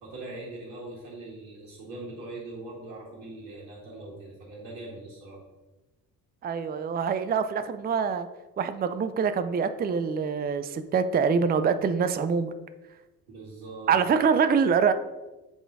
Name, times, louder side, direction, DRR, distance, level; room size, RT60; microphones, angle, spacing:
voice 1, 0.0-5.4 13.3-14.0, right 2 dB, 75° right, -6 dB, 1.9 m, -41 dB
voice 2, 6.4-8.3 8.6-12.5 13.9-14.9, right 6 dB, 20° right, 10 dB, 0.5 m, -25 dB
7.0 x 3.9 x 4.7 m, 1.1 s
hypercardioid pair, 50°, 47 cm